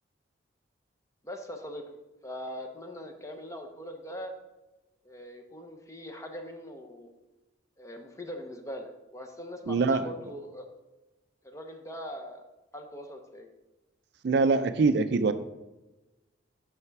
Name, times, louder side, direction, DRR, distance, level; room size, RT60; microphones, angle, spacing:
voice 1, 1.2-1.8 2.2-4.3 5.0-7.1 7.8-10.7 11.4-12.4 12.7-13.5, equal, 15° left, 5 dB, 0.7 m, -41 dB
voice 2, 9.7-10.1 14.2-15.3, right 4 dB, 55° right, 11 dB, 0.4 m, -24 dB
5.7 x 5.6 x 4.6 m, 1.1 s
head